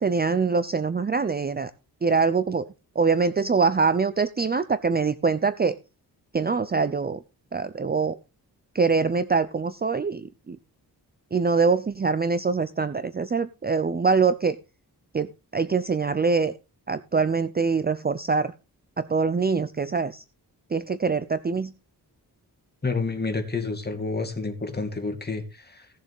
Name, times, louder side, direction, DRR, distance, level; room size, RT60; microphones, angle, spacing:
voice 1, 0.0-1.7 2.0-2.7 3.0-5.7 6.3-7.2 7.5-8.2 8.7-10.6 11.3-14.6 15.1-16.5 16.9-18.5 19.0-20.2 20.7-21.7, right 4 dB, 25° right, 13 dB, 0.6 m, -24 dB
voice 2, 22.8-25.9, left 3 dB, 25° left, 6 dB, 2.5 m, -29 dB
17.5 x 7.1 x 3.6 m, 0.29 s
wide cardioid pair, 115°, 38 cm